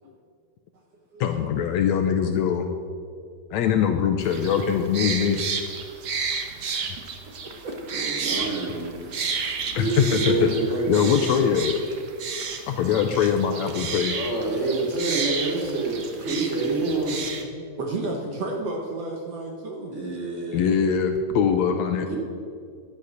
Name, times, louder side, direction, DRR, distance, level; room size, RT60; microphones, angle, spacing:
voice 1, 1.2-2.7 3.5-5.4 9.8-10.5 10.9-11.8 12.7-14.2 17.4-17.8 20.5-22.1, left 8 dB, 75° left, 6 dB, 1.8 m, -22 dB
sound 1, 4.2-17.4, right 5 dB, 85° right, 0.9 m, -32 dB
voice 2, 7.0-7.9 17.8-19.9, right 2 dB, 60° right, 1 dB, 2.0 m, -32 dB
voice 3, 7.9-8.9 9.3-11.4 13.0-13.1 14.1-17.2 19.9-20.7 21.7-21.8 22.1-22.2, right 3 dB, 25° right, -3 dB, 2.8 m, -27 dB
11.0 x 11.0 x 6.5 m, 2.3 s
omnidirectional pair, 3.6 m